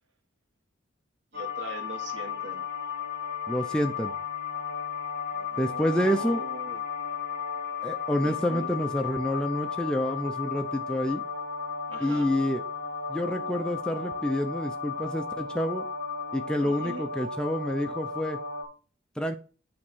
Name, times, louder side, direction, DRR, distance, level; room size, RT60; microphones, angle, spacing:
sound 1, 1.3-18.6, left 6 dB, 45° right, 1.6 m, -34 dB
voice 1, 1.3-2.6 5.3-6.8 8.2-8.7 11.9-12.3 16.6-17.1, right 1 dB, 70° right, 1.3 m, -41 dB
voice 2, 3.5-4.1 5.6-6.4 7.8-11.2 12.0-12.6 13.1-15.8 16.3-18.4 19.2-19.4, equal, 5° left, 0.5 m, -28 dB
8.6 x 3.2 x 6.2 m
head